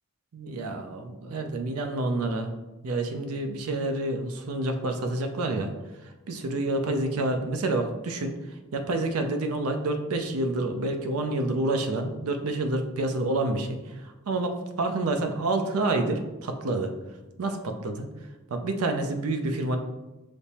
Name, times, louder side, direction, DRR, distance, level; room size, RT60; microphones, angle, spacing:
voice 1, 0.3-2.5 2.8-5.7 6.3-8.3 8.7-16.9 17.4-18.1 18.5-19.8, right 2 dB, 85° right, 5 dB, 0.5 m, -28 dB
5.2 x 2.0 x 4.2 m, 1.1 s
head